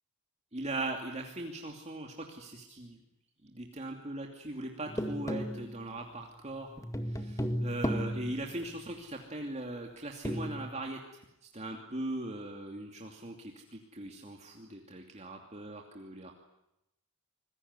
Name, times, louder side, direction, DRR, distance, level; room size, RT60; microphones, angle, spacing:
voice 1, 0.5-3.0 3.4-6.7 7.0-11.0 11.5-16.3, right 2 dB, 30° right, 2 dB, 2.7 m, -40 dB
sound 1, 4.9-6.2 6.6-8.8 10.2-10.7, equal, 15° left, 2.0 m, -35 dB
27.0 x 21.0 x 9.7 m, 0.87 s
head